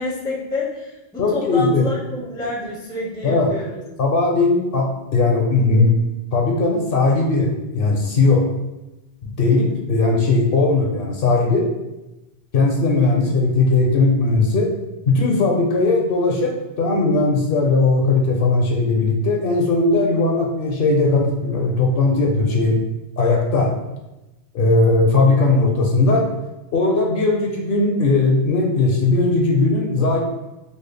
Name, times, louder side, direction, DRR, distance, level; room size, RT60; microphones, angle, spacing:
voice 1, 0.0-3.8, left 2 dB, 5° left, -3 dB, 0.4 m, -28 dB
voice 2, 1.2-1.9 3.2-3.5 4.0-6.0 6.3-8.5 9.2-11.7 12.5-14.7 15.1-22.8 23.2-23.7 24.5-26.3 26.7-30.2, left 3 dB, 65° left, 0 dB, 0.7 m, -18 dB
3.9 x 2.0 x 3.3 m, 1.0 s
omnidirectional pair, 1.1 m